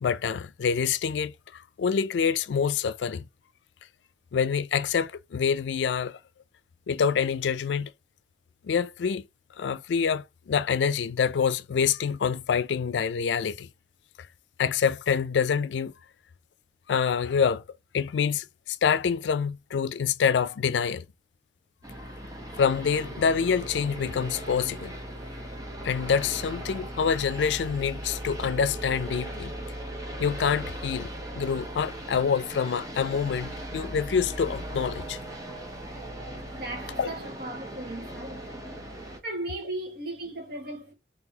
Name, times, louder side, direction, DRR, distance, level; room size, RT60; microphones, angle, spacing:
voice 1, 0.0-3.2 4.3-6.2 6.9-7.9 8.6-9.2 9.6-13.7 14.6-15.9 16.9-17.6 17.9-21.0 22.0-22.1 22.6-25.0 25.8-29.6 30.2-35.2 37.0-37.1, left 6 dB, 90° left, 0.4 m, -26 dB
sound 1, 21.8-39.2, right 1 dB, 20° right, 1.0 m, -38 dB
voice 2, 36.5-38.5 39.2-40.9, right 1 dB, 60° right, 1.7 m, -36 dB
3.8 x 3.3 x 2.9 m
head